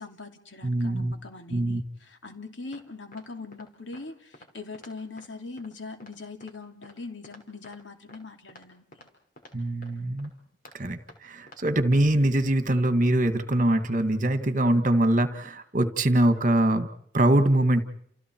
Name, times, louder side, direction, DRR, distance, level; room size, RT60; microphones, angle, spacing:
voice 1, 0.0-9.1, left 3 dB, 85° left, 6 dB, 2.9 m, -42 dB
voice 2, 0.6-1.1 1.5-1.8 9.5-10.3 10.7-16.9 17.1-17.8, right 1 dB, 45° right, 10 dB, 2.0 m, -23 dB
sound 1, 2.7-2.8 3.1-3.2 3.5-3.7 3.9-4.0 4.3-4.5 4.7-4.9 5.2-5.3 5.6-5.7 6.0-6.1 6.4-6.5 6.8-6.9 7.2-7.8 8.1-8.2 8.5-8.6 8.9-9.1 9.4-9.5 9.8-9.9 10.2-10.3 10.6-10.7 11.1-11.2 11.5-11.6 11.9-12.0, left 1 dB, 45° left, 5.5 m, -50 dB
30.0 x 29.5 x 4.7 m, 0.66 s
head